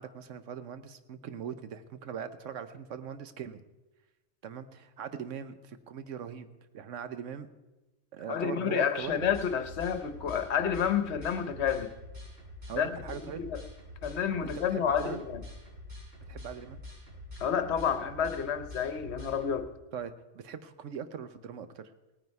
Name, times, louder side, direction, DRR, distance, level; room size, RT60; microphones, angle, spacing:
voice 1, 0.0-3.6 4.4-6.5 6.7-7.5 8.1-9.3 12.7-13.4 14.4-15.2 16.3-16.8 19.9-21.8, right 8 dB, 80° right, 11 dB, 1.1 m, -40 dB
voice 2, 8.3-11.9 12.8-12.9 13.2-13.6 14.0-15.4 17.4-19.7, left 8 dB, 65° left, 10 dB, 1.1 m, -30 dB
sound 1, 8.9-19.6, left 1 dB, 55° right, 5.4 m, -46 dB
18.0 x 9.5 x 4.6 m, 1.1 s
omnidirectional pair, 1.3 m